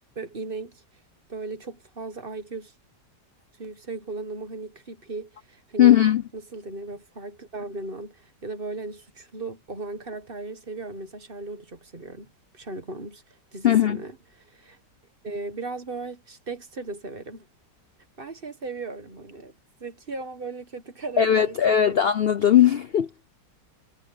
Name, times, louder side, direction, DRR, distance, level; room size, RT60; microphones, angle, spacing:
voice 1, 0.1-0.8 1.3-2.7 3.6-6.0 6.3-14.8 15.2-17.5 18.2-19.5 19.8-22.0, right 3 dB, 35° right, 1.5 m, -37 dB
voice 2, 5.8-6.2 13.6-14.0 21.2-23.1, left 10 dB, 65° left, 0.5 m, -18 dB
omnidirectional pair, 1.9 m